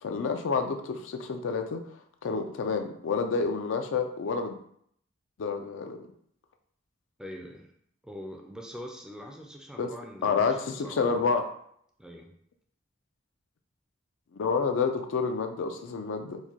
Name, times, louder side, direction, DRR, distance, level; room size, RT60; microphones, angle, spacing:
voice 1, 0.0-1.8 2.2-4.5 5.4-6.1 9.8-9.9 10.2-11.5 14.3-16.4, left 5 dB, 75° left, 6 dB, 0.4 m, -29 dB
voice 2, 7.2-7.7 8.0-11.2 12.0-12.3, equal, 5° right, 1 dB, 0.4 m, -43 dB
4.5 x 2.2 x 2.8 m, 0.68 s
head